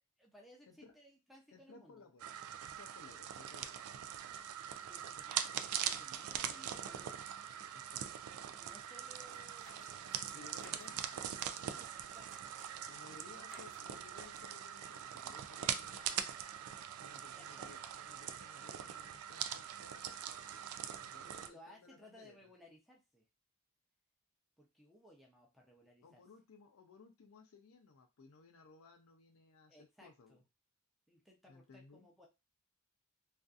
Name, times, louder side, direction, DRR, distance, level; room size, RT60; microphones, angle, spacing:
voice 1, 0.2-2.0 3.1-3.2 4.9-7.1 7.4-7.7 8.5-10.8 11.7-12.8 13.2-13.8 17.1-17.8 21.2-23.2 24.6-26.2 29.7-30.4 31.1-32.3, equal, ahead, -1 dB, 0.6 m, -61 dB
voice 2, 1.5-3.9 7.7-8.0 10.3-11.2 12.8-16.3 17.0-20.2 21.0-22.5 26.0-30.4 31.5-32.1, left 4 dB, 65° left, 6 dB, 0.5 m, -60 dB
sound 1, 2.2-21.5, right 9 dB, 75° right, 0.3 m, -42 dB
sound 2, 9.2-10.9 11.2-11.6 12.1-12.7 13.4-13.8 14.1-14.5, right 2 dB, 60° right, 1.0 m, -60 dB
2.6 x 2.4 x 2.4 m, 0.24 s
head